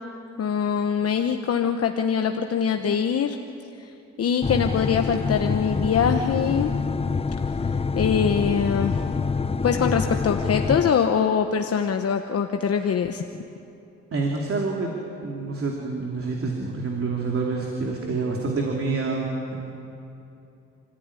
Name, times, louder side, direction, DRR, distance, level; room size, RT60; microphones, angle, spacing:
voice 1, 0.4-3.4 3.8-3.9 4.2-6.7 7.9-9.0 9.6-13.2, left 7 dB, 55° left, 5 dB, 1.1 m, -23 dB
sound 1, 4.4-10.9, left 5 dB, 20° left, 0.6 m, -26 dB
voice 2, 14.1-14.9 15.2-19.6, right 3 dB, 50° right, 0 dB, 2.9 m, -27 dB
28.5 x 15.0 x 9.8 m, 2.8 s
cardioid pair, 95°, 29 cm